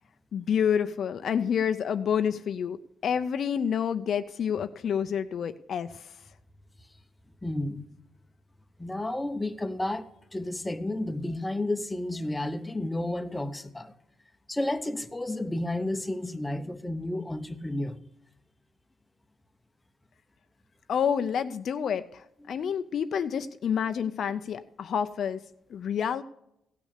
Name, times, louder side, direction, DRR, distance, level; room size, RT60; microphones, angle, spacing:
voice 1, 0.3-2.8 3.0-5.9 20.9-22.0 22.5-25.4 25.7-26.2, left 8 dB, 55° left, 0.5 m, -28 dB
voice 2, 7.4-7.9 8.8-13.9 14.5-18.0 22.4-22.6, left 1 dB, 10° left, 0.8 m, -32 dB
16.0 x 6.2 x 6.6 m
cardioid pair, 105°, 0 cm